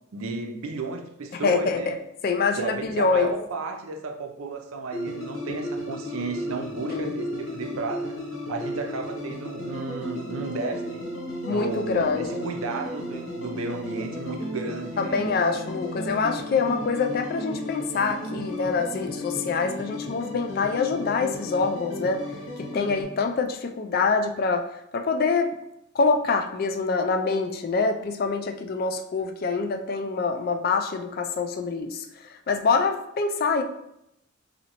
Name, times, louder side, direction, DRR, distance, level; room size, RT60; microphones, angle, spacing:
voice 1, 0.1-2.0 2.6-8.2 8.5-11.0 11.5-15.3, right 3 dB, 80° right, 4 dB, 0.5 m, -33 dB
voice 2, 1.3-2.0 2.2-3.3 6.9-7.1 11.5-12.5 15.0-22.2 22.6-24.7 24.9-25.5 25.9-33.6, left 4 dB, 45° left, 6 dB, 0.3 m, -25 dB
sound 1, 4.9-23.0, left 1 dB, 65° left, 0.9 m, -34 dB
4.1 x 2.7 x 2.9 m, 0.80 s
head